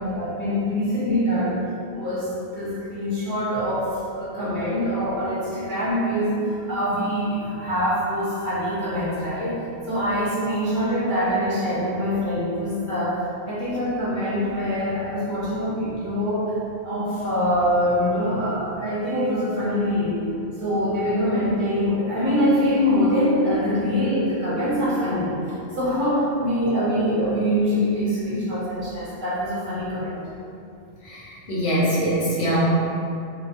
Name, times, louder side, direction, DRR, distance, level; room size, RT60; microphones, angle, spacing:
voice 1, 0.0-1.6 1.9-9.6 9.8-16.6 16.8-20.3 20.6-30.2, equal, 45° right, -10 dB, 1.0 m, -24 dB
voice 2, 31.0-32.6, right 1 dB, 65° left, -7 dB, 0.9 m, -23 dB
3.2 x 3.0 x 2.5 m, 2.7 s
omnidirectional pair, 1.3 m